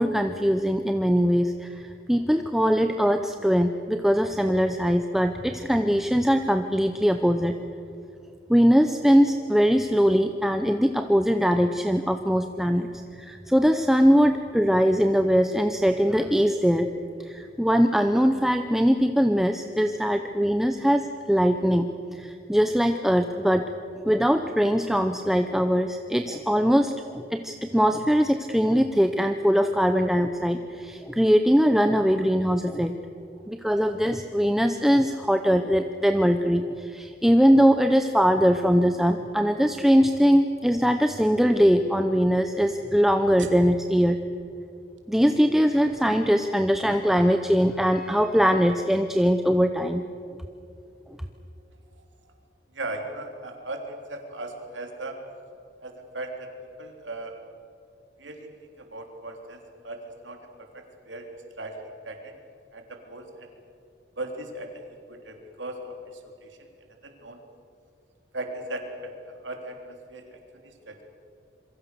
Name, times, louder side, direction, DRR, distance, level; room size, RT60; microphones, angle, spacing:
voice 1, 0.0-7.5 8.5-12.9 13.2-16.9 17.2-21.9 22.1-23.6 24.0-32.9 33.5-44.2 45.1-50.0, equal, ahead, 7 dB, 0.7 m, -21 dB
voice 2, 52.7-55.2 55.8-56.5 56.8-57.3 58.2-58.5 58.8-61.3 61.6-61.8 62.0-62.4 62.7-63.5 64.2-64.8 65.1-66.6 67.0-67.4 68.3-71.0, right 2 dB, 90° right, 3 dB, 3.4 m, -38 dB
27.0 x 23.0 x 6.8 m, 2.6 s
head